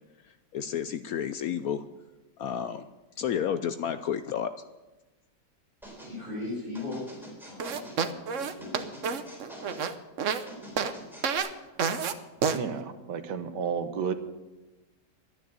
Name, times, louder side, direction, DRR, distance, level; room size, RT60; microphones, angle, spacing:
voice 1, 0.5-1.8 2.4-2.8 3.2-4.5, left 8 dB, 65° left, 11 dB, 0.9 m, -31 dB
sound 1, 5.8-6.2 6.7-8.0 8.6-9.9 10.5-11.4, right 1 dB, ahead, 3.4 m, -45 dB
voice 2, 6.1-7.0 7.5-8.8, left 2 dB, 25° left, -8 dB, 5.5 m, -38 dB
sound 2, 7.6-10.4 10.8-10.9 11.2-11.5 11.8-12.1 12.4-12.6, right 6 dB, 55° right, 1.0 m, -28 dB
voice 3, 12.5-14.1, right 6 dB, 75° right, 8 dB, 1.7 m, -32 dB
12.0 x 10.0 x 7.8 m, 1.1 s
omnidirectional pair, 1.9 m